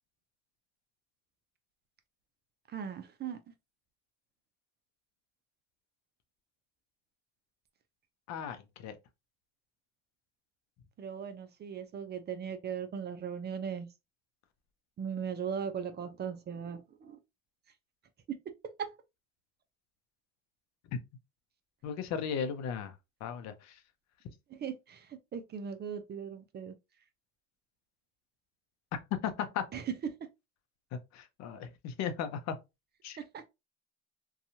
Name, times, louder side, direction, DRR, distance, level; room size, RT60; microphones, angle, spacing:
voice 1, 2.7-3.4 11.0-13.9 15.0-17.2 18.3-18.5 18.8-18.9 24.5-26.7 29.7-30.2 33.2-33.4, right 7 dB, 35° right, 0.5 m, -38 dB
voice 2, 8.3-9.0 20.9-21.0 21.8-23.0 23.2-23.8 29.2-29.6 30.9-32.6 33.0-33.2, left 7 dB, 60° left, 0.6 m, -36 dB
2.7 x 2.3 x 2.6 m
supercardioid pair, 85°, 30 cm